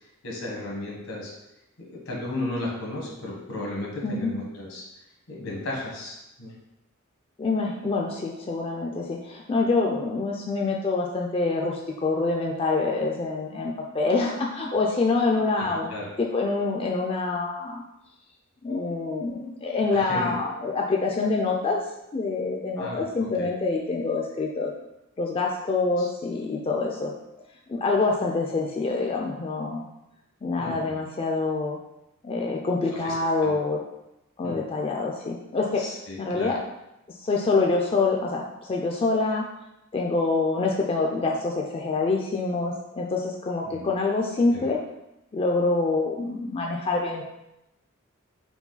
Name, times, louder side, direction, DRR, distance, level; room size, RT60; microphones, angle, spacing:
voice 1, 0.2-1.3 1.8-4.8 5.3-6.5 15.6-16.1 19.9-20.4 22.8-23.1 23.4-23.5 26.0-26.1 30.6-31.0 32.9-33.1 33.4-33.6 34.4-34.6 35.8-36.6 43.7-43.9 44.5-44.7, left 2 dB, 80° left, -2 dB, 1.3 m, -34 dB
voice 2, 7.4-15.9 16.2-17.8 18.6-21.8 22.1-24.7 25.2-27.1 27.7-29.9 30.4-31.8 32.2-33.8 34.4-35.8 36.2-36.6 37.2-39.5 39.9-44.8 45.3-47.2, left 3 dB, 30° left, -1 dB, 0.3 m, -26 dB
4.6 x 2.2 x 3.9 m, 0.89 s
head